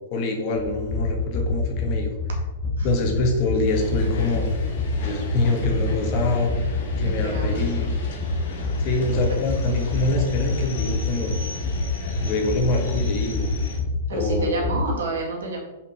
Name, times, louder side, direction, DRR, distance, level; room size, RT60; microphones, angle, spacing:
voice 1, 0.1-2.1 2.8-4.4 5.0-8.0 8.8-11.3 12.2-13.5 14.1-14.7, left 2 dB, 45° left, 2 dB, 1.5 m, -25 dB
sound 1, 0.6-14.8, left 3 dB, 25° left, 1.7 m, -27 dB
sound 2, 3.6-13.8, left 1 dB, 60° left, 1.7 m, -35 dB
voice 2, 7.0-8.0 9.3-9.4 14.1-15.6, right 3 dB, 70° right, -1 dB, 2.1 m, -30 dB
5.4 x 5.2 x 4.7 m, 1.1 s
hypercardioid pair, 110°, 0 cm